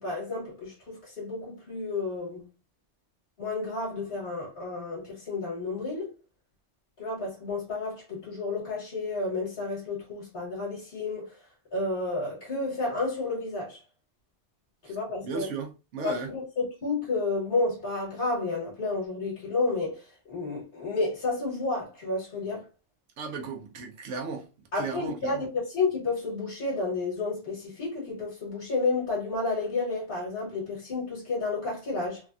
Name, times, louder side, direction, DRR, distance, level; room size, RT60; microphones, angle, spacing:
voice 1, 0.0-2.4 3.4-6.1 7.0-11.3 11.7-13.8 14.9-15.5 16.0-20.0 20.3-22.6 24.7-32.2, left 3 dB, 55° left, 1.5 m, -31 dB
voice 2, 15.2-16.3 23.2-24.5 24.7-25.5, right 4 dB, 75° right, 1.0 m, -35 dB
3.4 x 2.1 x 2.4 m
omnidirectional pair, 1.2 m